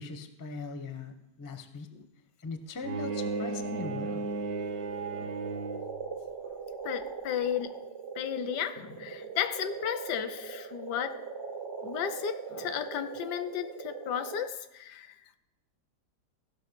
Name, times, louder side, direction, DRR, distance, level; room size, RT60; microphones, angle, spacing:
voice 1, 0.0-1.9 2.4-4.3, left 4 dB, 30° left, 8 dB, 0.4 m, -40 dB
Bowed string instrument, 2.8-6.1, right 3 dB, 70° right, 1.2 m, -35 dB
sound 1, 3.1-14.5, right 5 dB, 25° right, 0.5 m, -41 dB
voice 2, 6.8-7.8 8.2-11.2 11.8-15.2, left 9 dB, 80° left, 12 dB, 1.3 m, -34 dB
15.0 x 5.5 x 6.0 m, 0.86 s
omnidirectional pair, 1.8 m